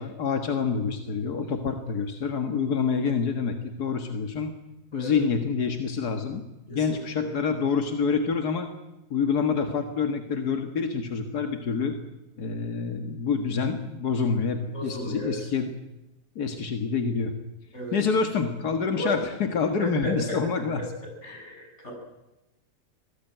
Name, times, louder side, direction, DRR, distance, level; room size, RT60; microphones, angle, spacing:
voice 1, 0.0-4.5 4.9-8.7 9.1-12.0 12.4-15.7 16.4-17.3 17.9-20.9, left 5 dB, 90° left, 6 dB, 2.2 m, -27 dB
voice 2, 6.7-7.3 14.7-15.5 17.7-18.0 18.9-19.1 19.8-20.4 21.2-21.9, equal, 45° left, 1 dB, 7.7 m, -34 dB
25.0 x 18.5 x 9.1 m, 0.98 s
omnidirectional pair, 1.6 m